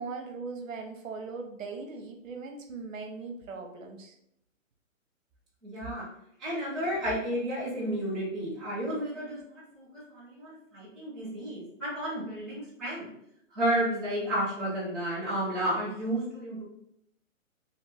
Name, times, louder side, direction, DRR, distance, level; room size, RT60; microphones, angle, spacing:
voice 1, 0.0-4.2, right 4 dB, 70° right, 4 dB, 0.8 m, -39 dB
voice 2, 5.6-6.0 6.4-13.1 13.5-16.6, right 1 dB, ahead, -13 dB, 0.4 m, -32 dB
3.0 x 2.5 x 3.3 m, 0.75 s
hypercardioid pair, 180°, 40 cm